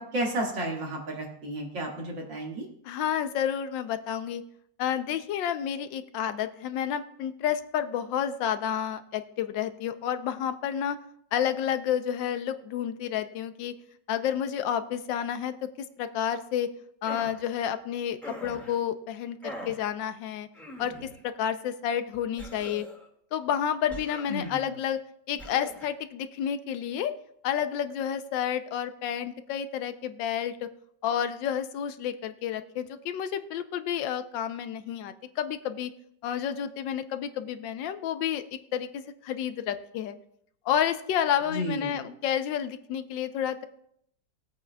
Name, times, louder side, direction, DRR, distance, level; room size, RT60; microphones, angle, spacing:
voice 1, 0.0-2.7 24.3-24.7 41.5-42.0, right 1 dB, 80° right, -1 dB, 2.7 m, -32 dB
voice 2, 2.8-4.4 4.8-11.0 11.3-13.7 14.1-16.7 17.0-20.5 20.8-22.8 23.3-25.0 25.3-27.1 27.4-30.7 31.0-35.9 36.2-40.1 40.6-43.7, left 9 dB, 85° left, 10 dB, 1.4 m, -30 dB
sound 1, 17.0-17.4 18.2-18.8 19.4-19.8 20.5-21.2 22.4-23.1 23.9-24.6 25.4-25.9, equal, ahead, 1.7 m, -42 dB
19.0 x 8.4 x 2.2 m, 0.72 s
omnidirectional pair, 2.0 m